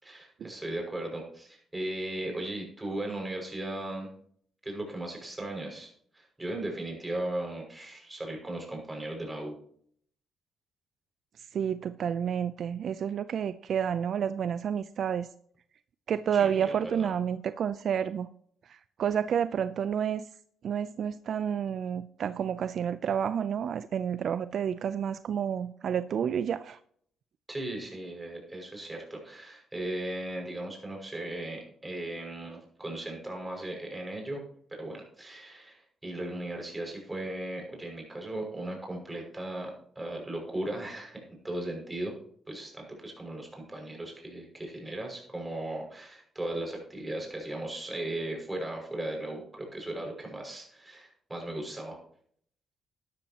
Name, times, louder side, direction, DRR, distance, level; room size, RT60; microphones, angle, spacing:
voice 1, 0.0-4.1 4.6-9.5 16.3-17.1 27.5-34.4 34.7-42.2 42.5-52.0, right 1 dB, 15° right, 1 dB, 5.8 m, -37 dB
voice 2, 11.4-15.3 16.1-18.3 18.7-20.3 20.6-26.8, right 8 dB, 60° right, 14 dB, 0.5 m, -30 dB
12.5 x 12.0 x 2.9 m, 0.62 s
cardioid pair, 90°, 0 cm